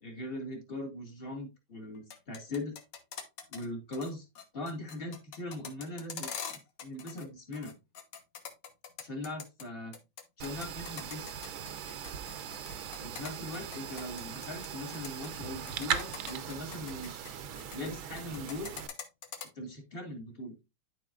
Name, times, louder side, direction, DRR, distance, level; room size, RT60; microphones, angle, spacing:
voice 1, 0.0-2.7 3.5-4.2 4.5-6.3 6.8-7.7 9.0-10.0 10.4-11.3 13.0-17.4 17.7-18.7 19.6-20.5, left 1 dB, 30° left, 2 dB, 1.8 m, -40 dB
sound 1, 2.0-3.7 3.9-4.1 4.4-7.3 7.5-9.6 9.9-14.7 14.9-15.3 15.7-17.9 18.2-19.5, left 7 dB, 65° left, 1.6 m, -43 dB
sound 2, 10.4-18.9, right 8 dB, 85° right, 1.6 m, -39 dB
12.0 x 4.4 x 2.4 m, 0.25 s
omnidirectional pair, 2.2 m